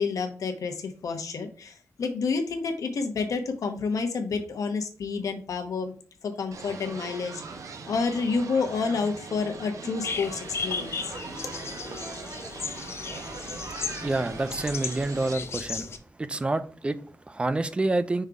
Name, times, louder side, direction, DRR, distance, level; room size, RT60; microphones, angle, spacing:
voice 1, 0.0-5.9 6.2-7.4 7.9-11.1, left 4 dB, 80° left, 5 dB, 1.0 m, -29 dB
sound 1, 6.5-15.3, right 4 dB, 75° right, 0.8 m, -40 dB
sound 2, 10.0-16.0, left 5 dB, 50° left, 0.6 m, -35 dB
voice 2, 14.0-15.9 16.2-18.3, right 2 dB, 20° right, 12 dB, 0.4 m, -28 dB
5.4 x 3.7 x 4.6 m, 0.41 s
wide cardioid pair, 175°, 6 cm